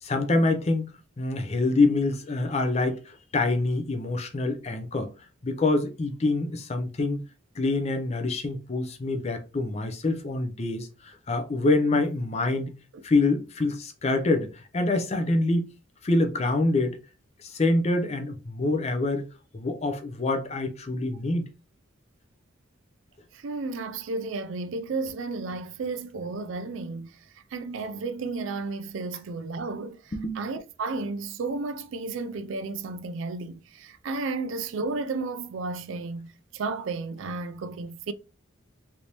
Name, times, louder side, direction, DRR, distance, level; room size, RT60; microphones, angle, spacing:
voice 1, 0.0-5.1 5.4-7.2 7.6-12.7 13.0-15.7 16.0-17.0 17.4-19.2 19.5-21.5 30.1-30.4, left 2 dB, 30° left, 0.5 m, -26 dB
voice 2, 23.3-38.1, right 3 dB, 65° right, 0.4 m, -33 dB
3.4 x 2.6 x 2.8 m
head